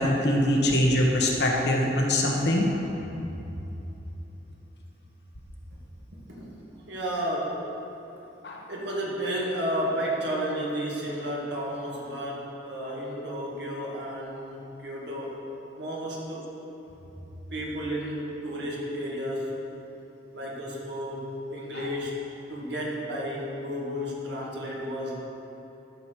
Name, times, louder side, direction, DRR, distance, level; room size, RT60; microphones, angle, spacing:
voice 1, 0.0-2.7 8.4-8.6, left 1 dB, 65° left, -1 dB, 1.3 m, -23 dB
voice 2, 6.1-7.7 8.7-15.4 15.8-16.5 17.5-19.6 20.3-22.2 22.5-25.2, equal, 75° right, -4 dB, 2.0 m, -32 dB
12.5 x 6.0 x 4.7 m, 3.0 s
head